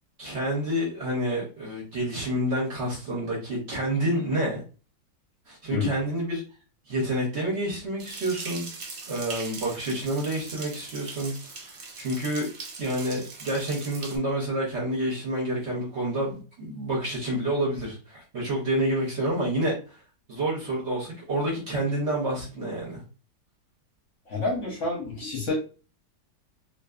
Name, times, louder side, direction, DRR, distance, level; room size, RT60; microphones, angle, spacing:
voice 1, 0.2-4.6 5.5-6.4 6.9-8.7 9.1-12.5 12.8-20.0 20.3-23.0, right 1 dB, 55° right, -3 dB, 0.8 m, -28 dB
sound 1, 8.0-14.2, right 4 dB, 85° right, 0.5 m, -40 dB
voice 2, 24.3-25.5, left 3 dB, 60° left, -2 dB, 0.9 m, -28 dB
2.5 x 2.4 x 2.3 m, 0.35 s
omnidirectional pair, 1.8 m